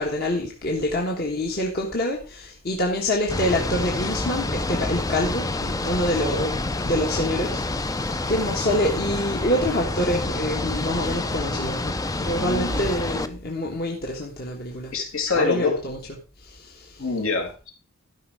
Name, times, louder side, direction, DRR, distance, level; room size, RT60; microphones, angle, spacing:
voice 1, 0.0-14.9 15.3-16.0 16.4-17.1, left 1 dB, 45° left, -1 dB, 1.6 m, -26 dB
sound 1, 3.3-13.3, left 2 dB, 15° left, 0.5 m, -28 dB
voice 2, 12.3-12.8 14.9-15.7 17.0-17.7, left 3 dB, 70° left, 2 dB, 2.9 m, -25 dB
13.0 x 5.5 x 5.0 m, 0.35 s
head